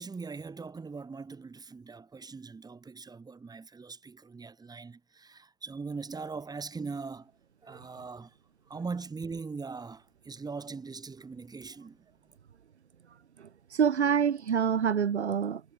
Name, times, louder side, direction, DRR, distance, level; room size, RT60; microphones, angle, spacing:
voice 1, 0.0-7.3 7.6-8.3 8.7-12.1, right 4 dB, 10° right, 5.3 m, -41 dB
voice 2, 13.4-15.6, right 7 dB, 85° right, 0.5 m, -27 dB
figure-of-eight pair, 95°, 33 cm